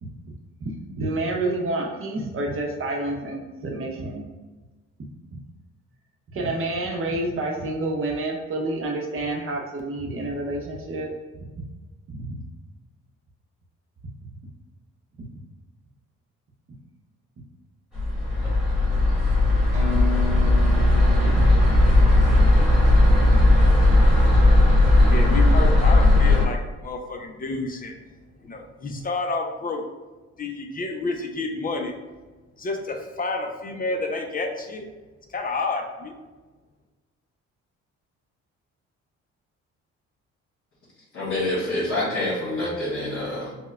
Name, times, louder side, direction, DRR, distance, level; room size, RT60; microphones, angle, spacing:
voice 1, 0.6-4.2 5.3-5.4 6.3-11.1 12.1-12.4 21.4-21.5, right 2 dB, 45° right, 0 dB, 0.7 m, -29 dB
sound 1, 17.9-26.5, left 1 dB, ahead, 1.5 m, -17 dB
sound 2, 19.7-23.5, left 9 dB, 90° right, 0.8 m, -35 dB
voice 2, 25.0-27.9 28.4-29.8 30.4-31.9 32.6-34.9 35.3-36.2, left 3 dB, 30° left, 3 dB, 0.4 m, -29 dB
voice 3, 41.1-43.5, left 1 dB, 55° left, -9 dB, 1.3 m, -27 dB
4.4 x 2.2 x 2.2 m, 1.2 s
cardioid pair, 90°, 30 cm